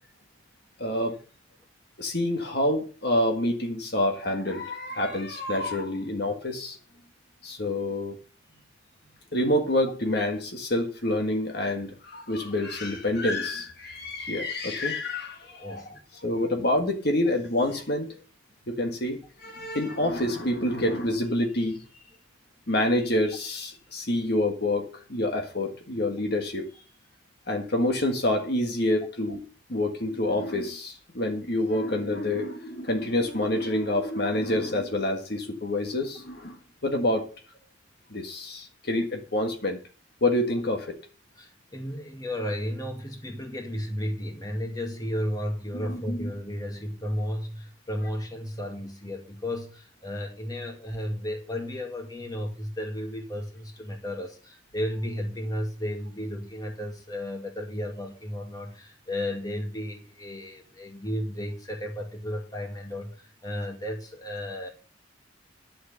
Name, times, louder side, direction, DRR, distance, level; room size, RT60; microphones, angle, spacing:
voice 1, 0.8-1.2 2.0-6.8 7.4-8.2 9.3-15.9 16.2-18.2 18.7-21.8 22.7-26.7 27.5-29.4 29.7-37.3 38.1-39.8 40.2-41.0 45.7-46.3, left 1 dB, 50° left, 1.6 m, -27 dB
voice 2, 15.6-16.0 41.4-64.7, equal, 20° left, 2.3 m, -33 dB
11.0 x 6.5 x 6.8 m
head